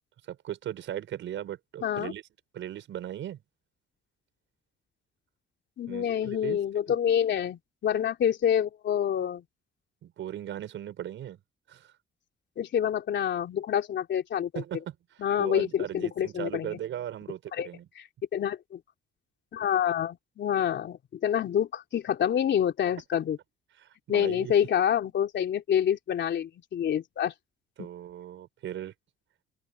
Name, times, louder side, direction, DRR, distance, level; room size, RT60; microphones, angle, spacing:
voice 1, 0.3-2.2 2.5-3.4 5.9-6.6 10.0-11.4 11.7-11.9 14.5-15.0 15.4-17.9 23.8-24.5 27.8-28.9, right 11 dB, 75° right, 6.1 m, -38 dB
voice 2, 1.8-2.1 5.8-9.4 12.6-14.6 15.2-16.8 17.5-17.7 18.0-18.1 18.3-18.8 19.5-23.4 24.1-27.3 27.8-27.9, left 9 dB, 65° left, 3.4 m, -27 dB
open air
cardioid pair, 90°, 20 cm